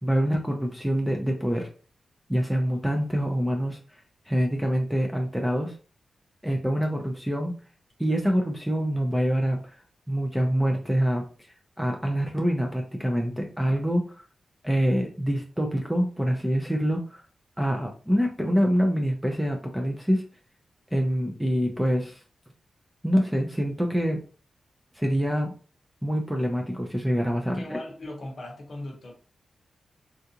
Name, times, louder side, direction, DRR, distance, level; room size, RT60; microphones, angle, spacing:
voice 1, 0.0-1.7 2.3-3.8 4.3-5.7 6.4-7.5 8.0-9.8 10.1-11.5 11.8-14.2 14.6-17.2 17.6-20.2 20.9-22.2 23.0-24.2 24.9-25.5 26.0-27.8, equal, 5° right, 2 dB, 0.4 m, -25 dB
voice 2, 27.5-29.1, left 1 dB, 45° left, 0 dB, 0.9 m, -38 dB
3.6 x 2.3 x 2.8 m, 0.38 s
wide cardioid pair, 150°, 0 cm